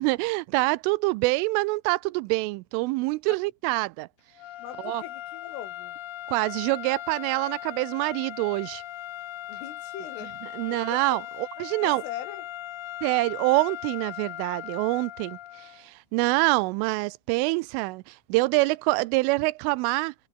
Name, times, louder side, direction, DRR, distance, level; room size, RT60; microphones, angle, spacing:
voice 1, 0.0-4.1 4.8-5.0 6.3-8.8 10.5-12.0 13.0-20.1, right 23 dB, 90° right, 3.2 m, -26 dB
sound 1, 4.3-15.9, left 14 dB, 75° left, 2.2 m, -39 dB
voice 2, 4.6-6.0 9.5-10.3 10.7-11.0 11.8-12.5, left 10 dB, 90° left, 5.4 m, -41 dB
omnidirectional pair, 5.6 m